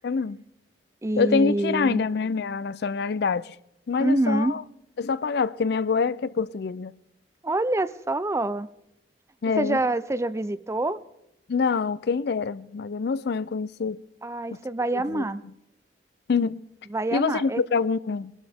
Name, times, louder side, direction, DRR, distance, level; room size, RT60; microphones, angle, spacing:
voice 1, 0.0-0.4 1.2-3.6 3.9-4.6 5.0-6.9 9.4-9.8 11.5-14.0 14.5-14.6 14.9-15.2 16.3-16.6 17.1-18.3, left 5 dB, 65° left, 0.4 m, -25 dB
voice 2, 1.0-2.0 4.0-4.6 7.4-8.7 9.6-11.0 14.2-15.4 16.9-17.6, right 2 dB, 15° right, 0.4 m, -26 dB
22.0 x 12.5 x 3.5 m
head